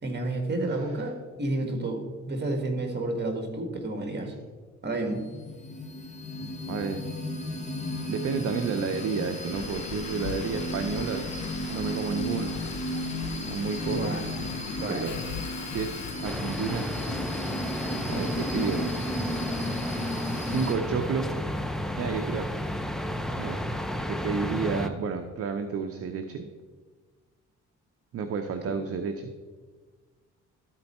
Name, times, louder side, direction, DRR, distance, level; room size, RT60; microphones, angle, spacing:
voice 1, 0.0-4.3 4.8-5.2 13.9-14.3 14.8-15.1 28.6-28.7, right 2 dB, 35° right, 5 dB, 1.6 m, -30 dB
sound 1, 4.9-20.7, left 1 dB, 25° left, 1.3 m, -34 dB
voice 2, 6.4-7.0 8.1-12.6 13.5-14.1 14.9-15.2 15.6-16.9 18.1-18.9 20.4-21.4 22.0-22.5 23.4-23.6 24.1-26.5 28.1-29.3, right 5 dB, 50° right, 7 dB, 0.7 m, -31 dB
Engine, 9.5-17.4 18.0-18.1, left 9 dB, 65° left, 0.4 m, -40 dB
sound 2, 16.2-24.9, equal, ahead, 0.5 m, -32 dB
12.5 x 4.4 x 4.2 m, 1.4 s
cardioid pair, 90°, 30 cm